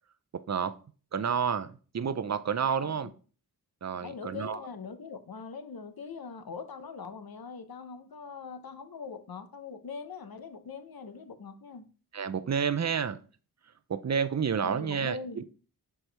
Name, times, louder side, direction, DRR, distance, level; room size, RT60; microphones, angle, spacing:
voice 1, 0.3-0.7 1.1-3.1 3.8-4.6 12.1-13.2 13.9-15.4, right 7 dB, 45° right, 0.6 m, -30 dB
voice 2, 2.8-3.1 3.9-11.9 14.6-15.4, left 5 dB, 70° left, 0.8 m, -42 dB
6.3 x 4.5 x 3.3 m
wide cardioid pair, 65°, 38 cm